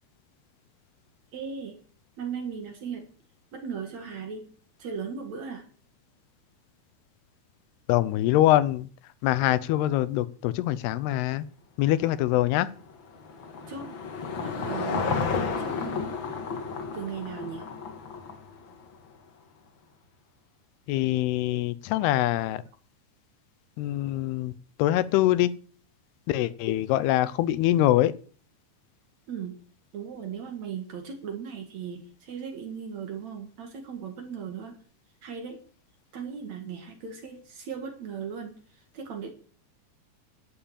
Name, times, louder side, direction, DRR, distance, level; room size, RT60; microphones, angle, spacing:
voice 1, 1.3-1.8 2.2-3.1 3.5-4.5 4.8-5.7 13.7-13.9 14.4-16.1 16.9-17.7 29.3-29.6 29.9-34.8 35.2-35.6 36.1-39.3, right 6 dB, 50° right, 5 dB, 2.6 m, -37 dB
voice 2, 7.9-8.9 9.2-11.5 11.8-12.7 20.9-22.6 23.8-24.5 24.8-25.5 26.3-28.1, left 14 dB, 85° left, 16 dB, 2.7 m, -24 dB
Car passing by / Engine, 12.5-18.9, left 5 dB, 55° left, 1.4 m, -32 dB
12.0 x 7.2 x 8.8 m, 0.42 s
omnidirectional pair, 4.6 m